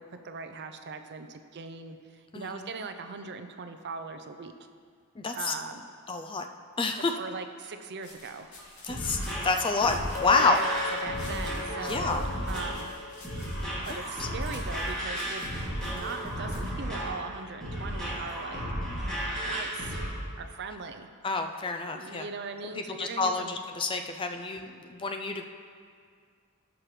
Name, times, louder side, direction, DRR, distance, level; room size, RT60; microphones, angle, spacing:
voice 1, 0.0-4.5 5.3-5.8 7.1-8.6 10.2-12.9 13.7-15.5 15.9-18.6 19.4-20.0 20.4-21.1 21.9-23.5, right 4 dB, 50° right, 8 dB, 0.6 m, -40 dB
voice 2, 2.3-2.7 5.2-5.5 6.1-6.5 6.8-7.1 8.8-10.6 11.8-12.2 14.2-14.3 21.2-22.2 22.6-25.4, left 3 dB, 25° left, 5 dB, 0.4 m, -28 dB
sound 1, 8.0-16.7, left 2 dB, 80° left, 2.2 m, -51 dB
sound 2, 8.6-20.1, equal, 5° left, 2.5 m, -34 dB
Chink clink, 10.1-14.3, left 6 dB, 40° left, 1.1 m, -40 dB
16.5 x 6.0 x 3.2 m, 2.1 s
head